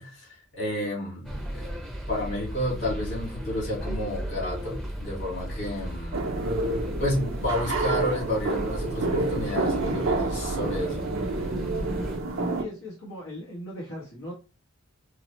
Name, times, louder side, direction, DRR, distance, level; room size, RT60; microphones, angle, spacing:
voice 1, 0.0-6.2 7.0-11.1, left 1 dB, 60° left, -3 dB, 1.9 m, -31 dB
sound 1, 1.2-12.2, equal, 5° left, 0.6 m, -35 dB
sound 2, 6.1-12.6, right 2 dB, 70° right, 0.7 m, -29 dB
voice 2, 12.5-14.3, left 1 dB, 85° left, -4 dB, 1.1 m, -38 dB
4.6 x 2.0 x 3.0 m, 0.32 s
head